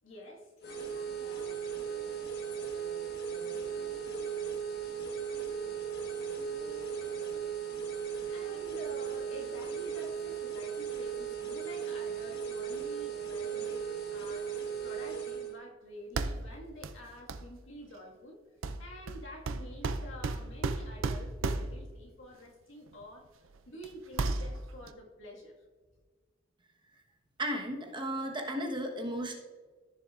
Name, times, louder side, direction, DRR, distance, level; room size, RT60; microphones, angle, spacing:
voice 1, 0.0-1.6 2.1-2.3 2.9-3.0 3.4-4.7 8.2-18.4 18.8-23.3 23.7-25.5, equal, 75° left, 0 dB, 1.8 m, -49 dB
sound 1, 0.6-15.5, right 7 dB, 55° left, 1.4 m, -37 dB
sound 2, 16.2-16.5 16.8-17.0 17.3-17.5 18.6-21.9 23.0-23.1 23.5-23.9 24.1-24.9, right 3 dB, 80° right, 0.5 m, -34 dB
voice 2, 27.4-29.4, equal, 25° right, 1 dB, 1.2 m, -34 dB
14.0 x 6.9 x 2.5 m, 1.4 s
head